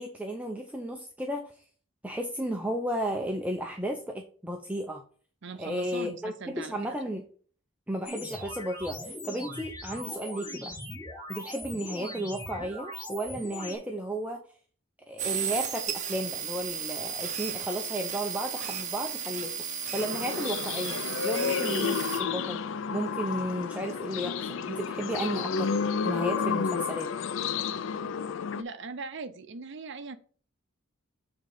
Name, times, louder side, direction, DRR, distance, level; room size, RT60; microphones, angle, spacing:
voice 1, 0.0-1.6 2.0-5.0 5.6-7.3 7.9-10.8 11.3-14.4 15.1-19.5 19.9-22.6 22.9-25.8 26.0-27.1, right 1 dB, 5° right, 2 dB, 0.5 m, -34 dB
voice 2, 5.4-6.7 28.5-30.2, right 4 dB, 55° right, 10 dB, 0.6 m, -40 dB
sound 1, 8.0-13.8, left 1 dB, 20° left, 2.3 m, -40 dB
sound 2, 15.2-22.2, right 7 dB, 35° right, 0.9 m, -34 dB
sound 3, 20.0-28.6, left 6 dB, 60° left, 0.4 m, -31 dB
7.3 x 3.8 x 4.9 m, 0.44 s
head